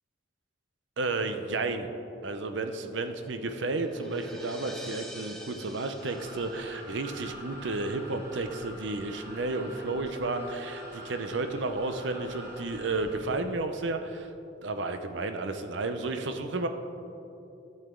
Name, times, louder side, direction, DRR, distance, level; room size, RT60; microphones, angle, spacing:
voice 1, 1.0-1.9 2.2-14.3 14.6-16.7, right 3 dB, 70° right, 8 dB, 0.6 m, -32 dB
sound 1, 2.1-7.3, equal, ahead, 0.8 m, -46 dB
sound 2, 6.0-13.4, equal, 15° right, 2.4 m, -45 dB
12.5 x 8.0 x 3.7 m, 2.8 s
head